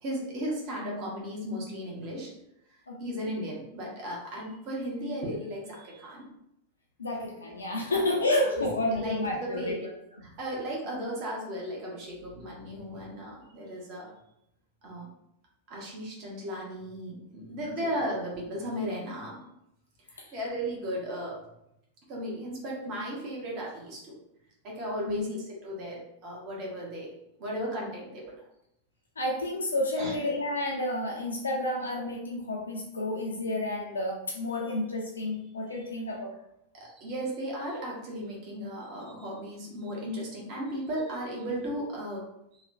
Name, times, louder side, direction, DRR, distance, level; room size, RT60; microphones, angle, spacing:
voice 1, 0.0-2.3 2.7-6.3 7.9-8.0 8.5-9.9 10.2-14.1 14.8-15.1 15.7-19.4 20.1-21.4 22.1-24.2 24.6-27.1 27.4-28.2 30.0-30.1 36.7-42.2 42.5-42.6, equal, 40° right, -3 dB, 0.9 m, -35 dB
voice 2, 2.9-3.3 7.0-9.7 20.2-20.3 25.1-25.3 29.2-36.3, left 1 dB, 75° left, -2 dB, 0.4 m, -30 dB
3.1 x 2.1 x 2.5 m, 0.80 s
figure-of-eight pair, 90°, 0 cm